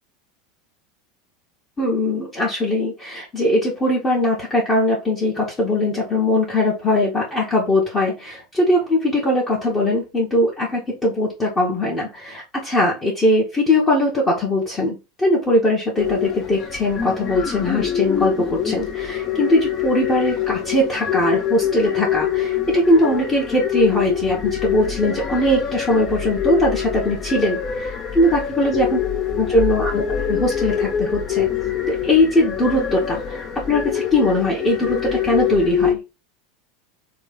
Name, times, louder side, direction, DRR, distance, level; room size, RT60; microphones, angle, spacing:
voice 1, 1.8-29.0 29.4-31.5 31.9-36.0, left 1 dB, 20° left, -4 dB, 1.1 m, -20 dB
sound 1, 16.0-35.9, left 9 dB, 40° left, 0.6 m, -25 dB
3.1 x 2.4 x 3.6 m, 0.27 s
figure-of-eight pair, 80°, 0 cm